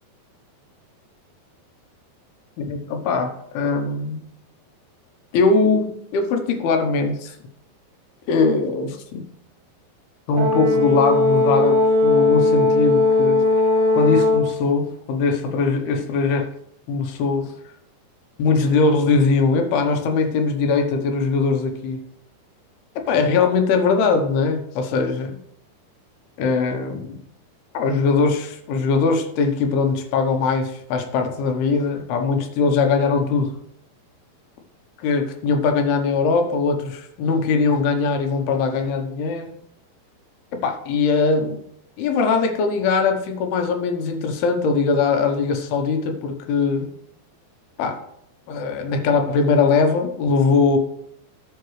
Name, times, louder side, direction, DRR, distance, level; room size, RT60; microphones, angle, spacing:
voice 1, 2.6-4.3 5.3-7.4 8.3-9.2 10.3-13.4 13.9-16.5 16.9-17.5 18.4-22.0 23.0-25.4 26.4-27.2 27.7-33.5 35.0-39.5 40.5-41.6 42.0-46.9 47.8-48.0 48.5-50.8, left 4 dB, 75° left, 5 dB, 2.8 m, -21 dB
Brass instrument, 10.4-14.6, left 2 dB, 75° right, 1.5 m, -18 dB
14.0 x 5.8 x 3.2 m, 0.72 s
omnidirectional pair, 4.9 m